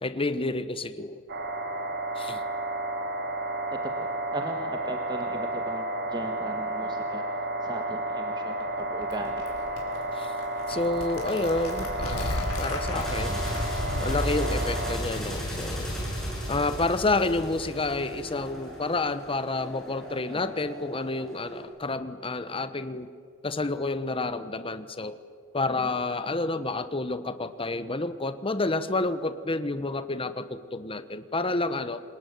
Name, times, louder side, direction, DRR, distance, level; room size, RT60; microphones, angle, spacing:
voice 1, 0.0-1.2 2.2-2.4 10.1-10.3 10.7-13.5 14.0-15.9 16.5-23.1 23.4-25.2 25.5-32.0, left 2 dB, 25° left, 12 dB, 1.1 m, -29 dB
sound 1, 1.3-15.0, right 1 dB, 50° right, 3.1 m, -32 dB
voice 2, 4.3-7.2 7.6-9.4 20.3-20.4 25.7-25.9, right 1 dB, 20° right, 4 dB, 1.5 m, -38 dB
sound 2, 8.7-14.7, left 1 dB, 75° left, 5.2 m, -34 dB
sound 3, 12.4-21.6, equal, 5° left, 7.7 m, -36 dB
27.0 x 21.0 x 9.4 m, 2.2 s
head